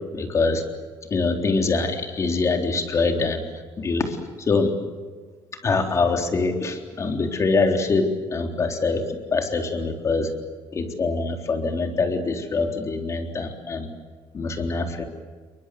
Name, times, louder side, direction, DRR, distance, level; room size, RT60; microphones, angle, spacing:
voice 1, 0.1-0.6 1.1-3.5 3.8-4.7 5.6-9.1 9.3-10.3 10.7-13.9 14.3-15.0, left 3 dB, 35° left, 4 dB, 3.8 m, -24 dB
29.0 x 23.5 x 7.9 m, 1.5 s
cardioid pair, 120°, 9 cm